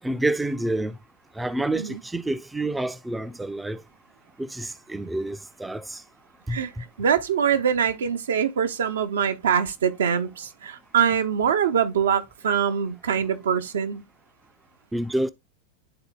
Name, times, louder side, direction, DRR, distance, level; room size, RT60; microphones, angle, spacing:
voice 1, 0.0-1.0 1.4-3.8 4.4-6.0 6.5-6.8 14.9-15.3, right 1 dB, 5° right, 0.4 m, -28 dB
voice 2, 7.0-14.0, right 7 dB, 65° right, 0.7 m, -24 dB
11.0 x 3.9 x 2.2 m
figure-of-eight pair, 90°, 0 cm